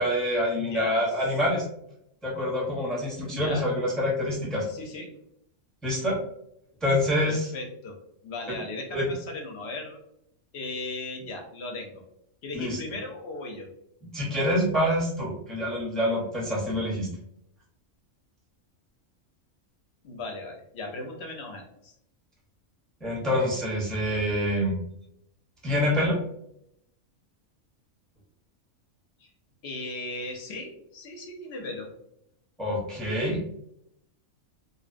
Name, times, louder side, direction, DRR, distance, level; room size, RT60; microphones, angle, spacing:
voice 1, 0.0-1.6 2.2-4.6 5.8-6.2 6.8-7.5 8.5-8.6 8.9-9.1 12.5-12.8 14.1-17.1 23.0-24.8 25.6-26.2 32.6-33.4, left 1 dB, ahead, -3 dB, 0.4 m, -26 dB
voice 2, 0.6-1.0 3.3-3.7 4.6-5.1 7.2-8.0 8.2-10.0 10.5-12.0 12.4-13.7 20.0-21.9 29.2-29.3 29.6-31.9, left 2 dB, 65° left, 2 dB, 0.7 m, -37 dB
2.7 x 2.0 x 2.4 m, 0.74 s
omnidirectional pair, 1.4 m